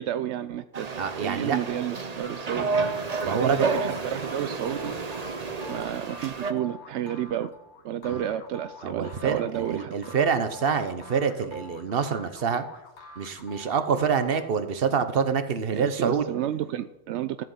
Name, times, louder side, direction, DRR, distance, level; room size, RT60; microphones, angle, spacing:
voice 1, 0.0-0.9 1.2-2.7 3.3-4.9 5.7-7.5 7.8-10.2 15.7-17.4, right 11 dB, 85° right, 12 dB, 0.9 m, -31 dB
sound 1, 0.7-6.5, right 4 dB, 40° right, 0.9 m, -31 dB
voice 2, 1.0-1.6 3.2-3.7 8.1-8.2 8.8-12.7 13.2-16.2, right 6 dB, 60° right, 10 dB, 1.2 m, -26 dB
sound 2, 2.2-14.8, left 3 dB, 85° left, 1.5 m, -46 dB
13.5 x 7.9 x 5.6 m, 0.93 s
omnidirectional pair, 1.1 m